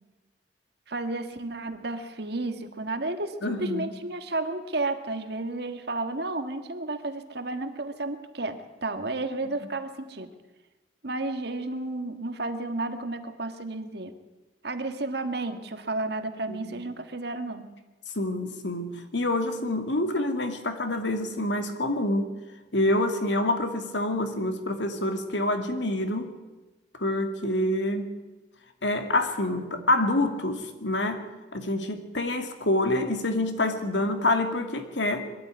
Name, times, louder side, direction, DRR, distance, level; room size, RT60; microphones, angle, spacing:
voice 1, 0.9-10.3 11.0-14.1 14.6-17.7, right 2 dB, 60° right, 8 dB, 1.7 m, -32 dB
voice 2, 3.4-3.9 9.4-9.5 16.7-16.8 18.2-22.3 22.7-26.3 27.0-28.1 28.8-31.2 31.5-35.3, left 1 dB, 75° left, 6 dB, 2.4 m, -27 dB
22.5 x 12.5 x 9.5 m, 1.2 s
head